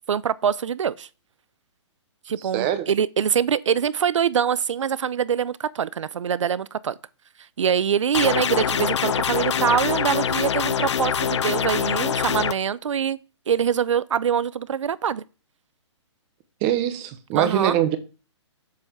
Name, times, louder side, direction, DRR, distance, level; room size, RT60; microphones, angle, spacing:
voice 1, 0.1-1.1 2.3-6.9 7.6-13.2 13.5-15.2 17.4-17.8, right 8 dB, 90° right, 0.6 m, -24 dB
voice 2, 2.5-2.9 16.6-18.0, right 11 dB, 20° right, 0.8 m, -23 dB
sound 1, 8.1-12.5, left 8 dB, 70° left, 0.7 m, -24 dB
7.6 x 5.7 x 6.6 m
hypercardioid pair, 165°, 15 cm